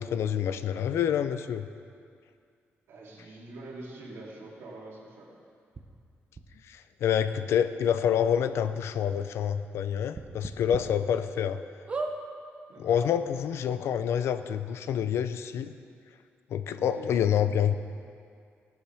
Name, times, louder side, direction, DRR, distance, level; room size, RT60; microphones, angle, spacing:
voice 1, 0.0-1.7 6.7-11.6 12.8-15.7 16.5-17.7, left 9 dB, 80° left, 11 dB, 0.5 m, -27 dB
voice 2, 2.9-5.3 12.7-13.1 16.7-17.2, right 2 dB, 70° right, -5 dB, 3.0 m, -45 dB
sound 1, 5.7-5.8 6.3-6.4 7.4-7.5 7.8-7.9 8.4-8.5 10.1-10.8 11.3-11.4 11.9-12.2 13.0-13.1 13.3-13.4, right 3 dB, 25° right, 0.8 m, -34 dB
17.0 x 12.0 x 3.5 m, 2.3 s
wide cardioid pair, 175°, 4 cm